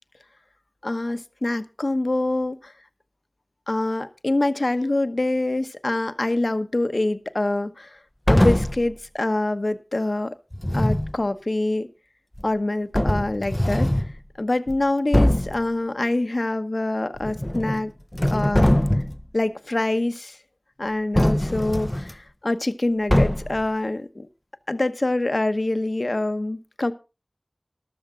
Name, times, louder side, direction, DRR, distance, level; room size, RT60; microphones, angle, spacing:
voice 1, 0.8-2.6 3.7-8.0 8.3-10.4 10.7-11.9 12.4-13.9 14.4-17.9 18.3-19.0 19.3-20.4 20.8-24.3 24.7-26.9, left 2 dB, 70° left, 1.0 m, -25 dB
sound 1, 8.3-8.9 10.5-11.2 12.4-12.5 12.9-14.1 14.7-14.8 15.1-15.6 17.2-17.8 18.1-19.2 21.1-22.1 23.1-23.6, left 1 dB, 20° left, 0.6 m, -21 dB
14.0 x 12.5 x 3.8 m
wide cardioid pair, 40°, 0 cm